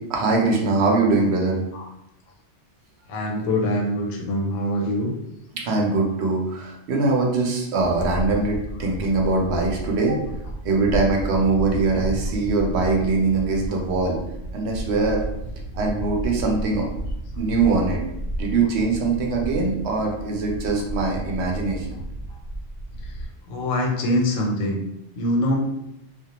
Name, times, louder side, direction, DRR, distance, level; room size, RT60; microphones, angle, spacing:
voice 1, 0.0-1.6 5.6-10.2 10.6-14.2 14.5-15.2 15.7-16.9 17.4-18.0 18.4-22.0, right 3 dB, 65° right, 0 dB, 0.8 m, -22 dB
voice 2, 3.1-5.1 22.3-22.4 23.0-24.8 25.1-25.6, left 1 dB, 90° left, 0 dB, 0.9 m, -24 dB
sound 1, 7.8-23.3, right 1 dB, 85° right, 1.1 m, -32 dB
2.2 x 2.1 x 2.8 m, 0.84 s
omnidirectional pair, 1.3 m